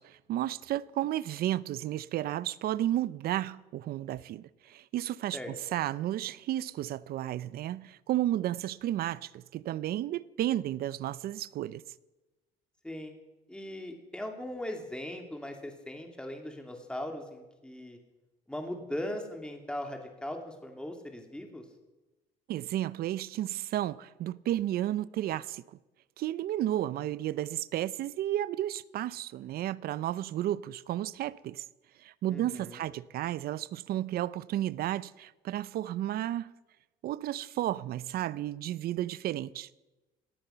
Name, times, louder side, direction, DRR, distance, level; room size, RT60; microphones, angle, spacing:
voice 1, 0.0-5.4 5.7-11.8 22.5-25.6 26.2-31.6 32.0-36.5 37.0-39.7, right 13 dB, 65° right, 0.6 m, -32 dB
voice 2, 12.8-13.2 13.5-18.0 18.5-21.6 32.3-32.8, left 1 dB, 5° left, 2.7 m, -39 dB
19.0 x 13.0 x 5.7 m
cardioid pair, 110°, 17 cm